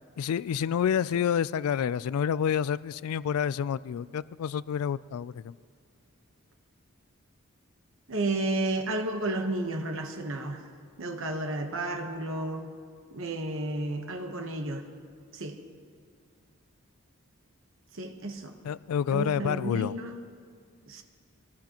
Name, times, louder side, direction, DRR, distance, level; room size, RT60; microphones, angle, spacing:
voice 1, 0.2-5.6 18.6-19.9, left 8 dB, 85° left, 19 dB, 0.3 m, -28 dB
voice 2, 8.1-10.7 11.0-12.7 13.1-14.9 15.3-15.6 17.9-18.6 19.1-20.2 20.9-21.0, right 2 dB, 60° right, 4 dB, 1.1 m, -32 dB
24.0 x 18.0 x 3.0 m, 2.2 s
head